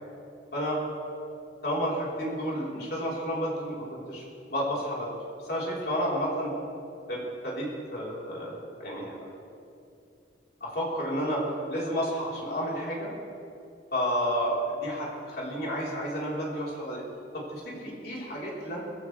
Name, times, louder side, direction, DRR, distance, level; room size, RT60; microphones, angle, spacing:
voice 1, 1.6-4.2 4.5-5.1 5.4-6.5 7.1-9.1 10.6-13.1 13.9-17.0 17.3-18.8, equal, 60° left, -5 dB, 4.3 m, -31 dB
21.0 x 15.5 x 3.5 m, 2.6 s
head